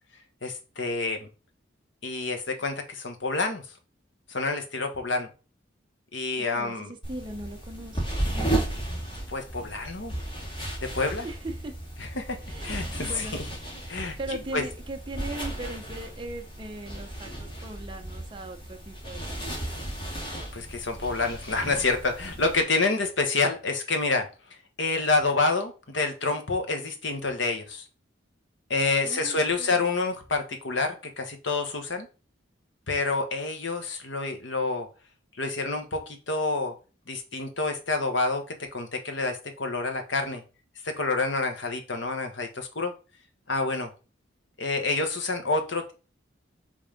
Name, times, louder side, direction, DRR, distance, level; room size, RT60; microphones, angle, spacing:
voice 1, 0.4-1.3 2.0-3.6 4.3-5.3 6.1-6.9 9.3-10.1 10.8-11.3 12.0-13.3 13.9-14.2 14.5-14.6 20.5-24.3 24.8-27.8 28.7-32.1 32.9-34.9 35.4-36.7 37.1-40.4 40.8-42.9 43.5-43.9 44.6-45.9, left 3 dB, 70° left, 1.2 m, -28 dB
sound 1, 7.0-22.6, right 1 dB, 25° left, 2.1 m, -34 dB
voice 2, 7.1-8.3 11.2-11.7 12.5-13.8 14.2-19.4 29.0-29.9, right 2 dB, 25° right, 0.8 m, -39 dB
5.5 x 3.4 x 5.1 m
head